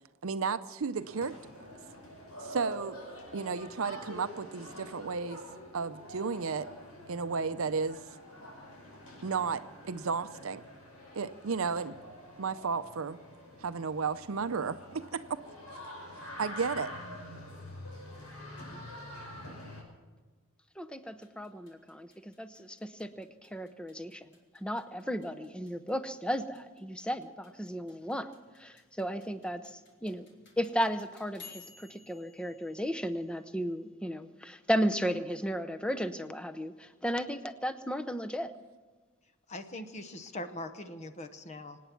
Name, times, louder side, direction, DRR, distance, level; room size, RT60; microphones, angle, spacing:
voice 1, 0.2-1.4 2.4-3.0 3.3-5.4 5.7-6.7 7.1-8.0 9.2-10.6 11.2-12.0 12.4-13.2 13.6-15.4 16.2-16.9, right 5 dB, 65° right, 12 dB, 0.6 m, -33 dB
sound 1, 0.9-19.8, left 1 dB, 85° left, 6.1 m, -47 dB
voice 2, 20.8-24.3 24.6-28.3 28.6-29.6 30.0-30.3 30.6-38.5, equal, 5° left, 10 dB, 0.6 m, -34 dB
sound 2, 21.1-33.8, left 5 dB, 55° left, 3.2 m, -58 dB
voice 3, 39.5-41.8, left 1 dB, 30° left, 8 dB, 0.9 m, -41 dB
25.5 x 9.4 x 5.9 m, 1.3 s
head